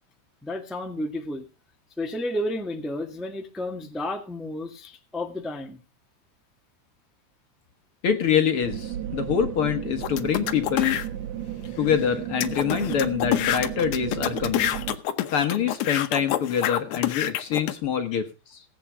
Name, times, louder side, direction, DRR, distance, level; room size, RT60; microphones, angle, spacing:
voice 1, 0.4-1.4 2.0-5.8, left 1 dB, ahead, 5 dB, 1.0 m, -31 dB
voice 2, 8.0-11.0 11.8-14.8 15.3-18.6, left 8 dB, 55° left, 8 dB, 1.9 m, -25 dB
sound 1, 8.6-15.0, right 11 dB, 70° right, 2.4 m, -33 dB
sound 2, 10.0-11.1 11.7-11.8 12.0-12.1 12.4-17.7, left 12 dB, 80° left, 2.3 m, -27 dB
17.5 x 8.7 x 4.9 m, 0.33 s
omnidirectional pair, 3.3 m